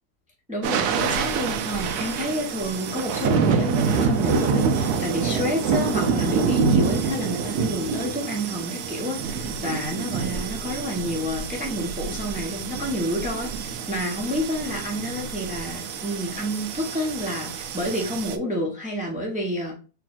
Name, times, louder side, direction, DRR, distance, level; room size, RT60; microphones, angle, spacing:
voice 1, 0.5-19.7, equal, 10° right, -1 dB, 0.6 m, -29 dB
sound 1, 0.6-18.4, right 5 dB, 80° right, 1.1 m, -26 dB
4.4 x 3.2 x 2.3 m, 0.34 s
omnidirectional pair, 1.7 m